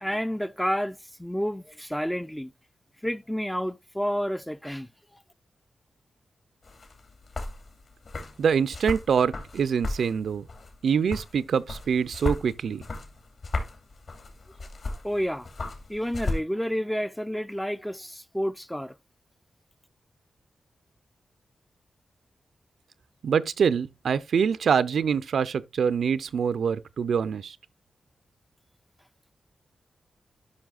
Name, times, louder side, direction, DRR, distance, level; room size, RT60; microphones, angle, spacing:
voice 1, 0.0-2.5 3.0-4.9 15.0-15.5 15.9-19.0, equal, 5° left, 0.4 m, -30 dB
sound 1, 6.6-16.4, left 2 dB, 55° left, 2.6 m, -36 dB
voice 2, 8.4-10.4 10.8-12.8 23.2-27.6, right 6 dB, 75° right, 0.5 m, -25 dB
13.0 x 5.6 x 2.4 m
wide cardioid pair, 135°, 0 cm